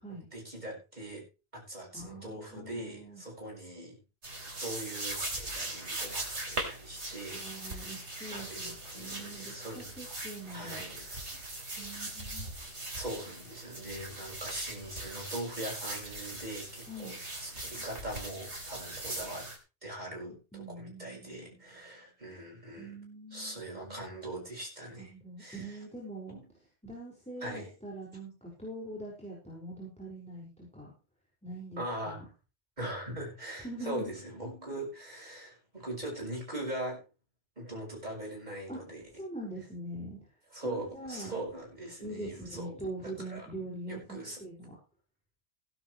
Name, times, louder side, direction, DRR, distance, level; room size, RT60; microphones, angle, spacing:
voice 1, 0.1-1.2 1.5-4.0 4.6-7.9 8.3-9.9 10.5-11.3 11.6-11.9 12.9-19.5 19.8-23.0 23.3-25.1 25.4-25.8 26.3-26.4 27.4-27.7 31.8-32.2 32.8-37.0 37.6-39.0 40.5-43.5 43.9-44.4, right 1 dB, 40° right, -1 dB, 6.6 m, -41 dB
voice 2, 1.9-3.2 7.3-10.8 11.8-12.5 16.9-17.2 20.5-21.5 22.8-23.6 25.0-26.4 26.8-30.9 31.4-32.3 33.6-34.1 38.7-38.8 39.2-40.2 40.6-41.3 42.0-44.8, right 1 dB, 5° left, -4 dB, 5.5 m, -43 dB
sound 1, 4.2-19.6, right 2 dB, 80° right, 4.1 m, -40 dB
17.5 x 11.5 x 3.3 m, 0.31 s
omnidirectional pair, 1.1 m